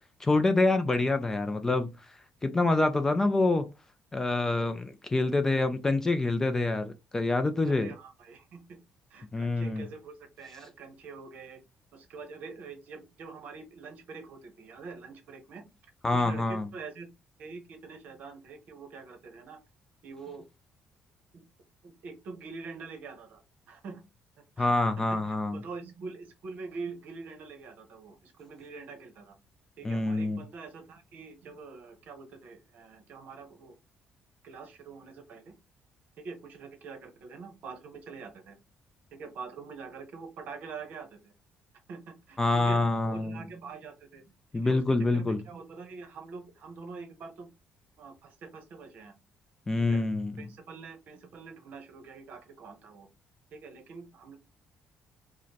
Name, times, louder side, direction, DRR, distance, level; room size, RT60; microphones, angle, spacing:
voice 1, 0.2-3.7 4.1-7.9 9.3-9.8 16.0-16.7 24.6-25.6 29.8-30.4 42.4-43.4 44.5-45.4 49.7-50.5, left 2 dB, 15° left, 0.3 m, -26 dB
voice 2, 7.6-8.8 9.1-11.6 11.9-15.6 16.1-17.1 17.4-19.6 20.0-20.4 21.3-21.4 21.8-23.4 23.7-24.0 24.6-29.4 29.8-33.8 34.4-35.5 36.2-38.6 39.1-41.3 41.9-44.3 44.5-44.8 45.1-47.5 48.0-49.1 49.9-50.0 50.4-53.1 53.5-54.4, right 4 dB, 55° right, 0.9 m, -45 dB
4.9 x 2.1 x 2.8 m
cardioid pair, 165°, 3 cm